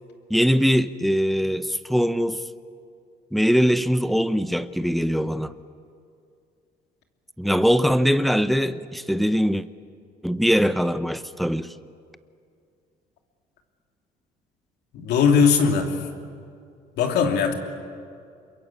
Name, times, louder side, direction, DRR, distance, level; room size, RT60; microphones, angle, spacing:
voice 1, 0.3-2.4 3.3-5.6 7.4-9.7 10.2-11.7, equal, ahead, 0.8 m, -22 dB
voice 2, 14.9-16.0 17.0-17.5, left 6 dB, 80° left, 2.9 m, -19 dB
27.5 x 22.5 x 8.5 m
cardioid pair, 110°, 17 cm